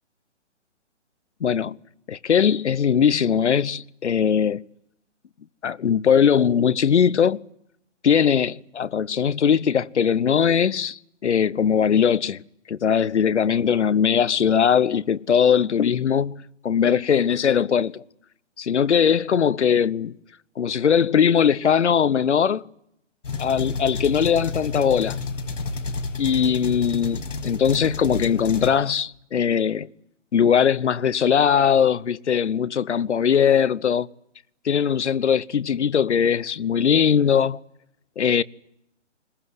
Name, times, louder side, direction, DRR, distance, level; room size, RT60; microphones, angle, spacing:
voice 1, 1.4-1.8 2.1-4.6 5.6-7.4 8.0-12.4 12.7-18.0 18.6-20.2 20.6-22.6 23.4-25.2 26.2-29.9 30.3-34.1 34.6-37.6 38.2-38.4, left 7 dB, 70° left, 0.9 m, -20 dB
sound 1, 23.2-28.8, left 3 dB, 85° left, 2.3 m, -30 dB
21.5 x 21.0 x 9.6 m
hypercardioid pair, 175°, 36 cm